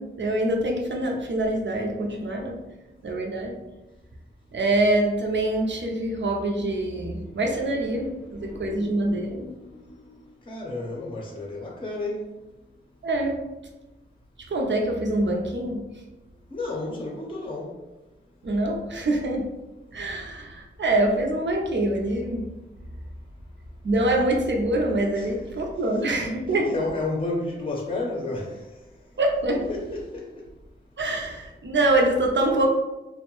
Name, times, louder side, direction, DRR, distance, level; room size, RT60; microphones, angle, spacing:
voice 1, 0.0-2.6 3.0-3.6 4.5-9.5 13.0-13.4 14.4-15.8 18.4-19.4 19.9-22.5 23.8-26.8 29.2-29.7 31.0-32.7, right 1 dB, 60° right, 1 dB, 0.6 m, -25 dB
voice 2, 8.6-9.5 10.5-12.2 16.5-17.7 25.2-25.3 26.5-28.6 29.7-30.3, left 2 dB, 25° left, -1 dB, 0.6 m, -31 dB
2.6 x 2.1 x 2.9 m, 1.0 s
wide cardioid pair, 55°, 21 cm